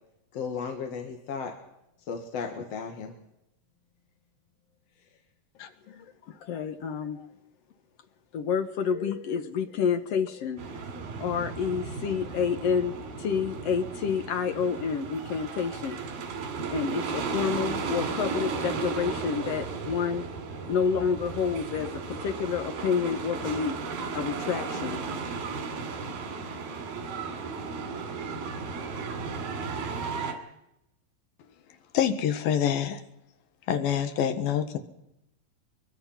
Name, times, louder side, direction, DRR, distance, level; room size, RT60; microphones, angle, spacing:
voice 1, 0.3-1.5 2.1-3.1, left 5 dB, 50° left, 4 dB, 2.5 m, -34 dB
voice 2, 5.9-7.3 8.3-16.0 16.7-20.3 20.7-23.8 24.1-25.0 27.3-27.4 28.1-28.2, left 6 dB, 70° left, 8 dB, 1.5 m, -29 dB
Wooden coaster, 10.6-30.3, right 4 dB, 85° right, 4.5 m, -35 dB
voice 3, 31.9-33.0 33.7-34.8, left 9 dB, 85° left, 9 dB, 3.2 m, -26 dB
23.0 x 22.5 x 5.7 m, 0.85 s
omnidirectional pair, 4.1 m